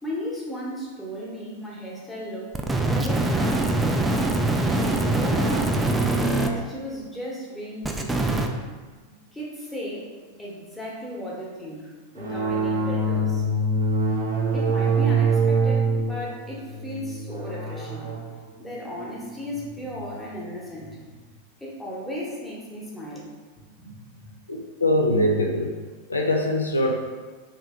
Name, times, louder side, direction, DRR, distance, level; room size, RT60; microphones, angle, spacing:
voice 1, 0.0-2.5 2.9-4.1 4.6-8.5 9.3-10.1 10.4-13.5 14.5-18.1 18.5-21.2 21.6-23.3 23.6-24.3, equal, 5° left, -6 dB, 1.0 m, -35 dB
sound 1, 2.5-6.5 7.8-8.5, right 2 dB, 10° right, 0.3 m, -23 dB
sound 2, 12.2-20.3, right 3 dB, 65° right, 0.6 m, -25 dB
voice 2, 24.5-25.8 26.1-26.9, left 1 dB, 80° left, 1 dB, 0.3 m, -22 dB
3.2 x 2.7 x 3.4 m, 1.4 s
figure-of-eight pair, 90°, 0 cm